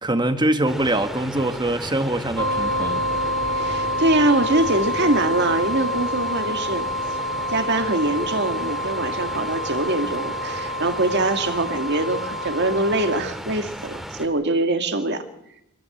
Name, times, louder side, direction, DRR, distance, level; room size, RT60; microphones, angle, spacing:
voice 1, 0.0-3.0, right 1 dB, 20° right, 1.6 m, -23 dB
sound 1, 0.7-14.3, equal, ahead, 2.5 m, -35 dB
sound 2, 2.4-13.2, left 1 dB, 70° right, 1.2 m, -27 dB
voice 2, 3.5-6.9 7.5-15.3, right 2 dB, 50° right, 2.1 m, -23 dB
26.0 x 16.0 x 8.0 m
head